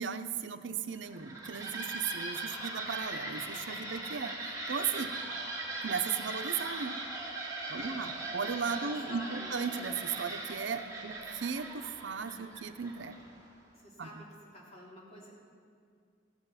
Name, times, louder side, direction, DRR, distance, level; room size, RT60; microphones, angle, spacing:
voice 1, 0.0-5.1 5.8-7.0 7.7-13.2 14.0-14.1, right 6 dB, 85° right, 9 dB, 0.6 m, -36 dB
sound 1, 0.9-13.5, right 2 dB, 20° right, 1.9 m, -40 dB
voice 2, 7.7-8.0 8.9-9.5 13.7-15.3, left 1 dB, 35° left, -5 dB, 3.1 m, -50 dB
14.5 x 9.0 x 5.7 m, 2.1 s
head